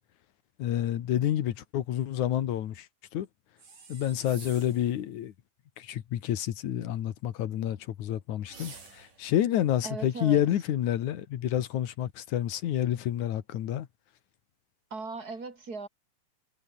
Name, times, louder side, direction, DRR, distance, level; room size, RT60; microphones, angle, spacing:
voice 1, 0.6-2.9 3.1-3.3 3.9-5.3 5.8-13.9, left 11 dB, 65° left, 2.7 m, -29 dB
sound 1, 3.6-4.9 8.4-9.3, right 5 dB, 65° right, 7.5 m, -48 dB
voice 2, 9.8-10.4 14.9-15.9, right 4 dB, 25° right, 4.5 m, -38 dB
omnidirectional pair, 4.0 m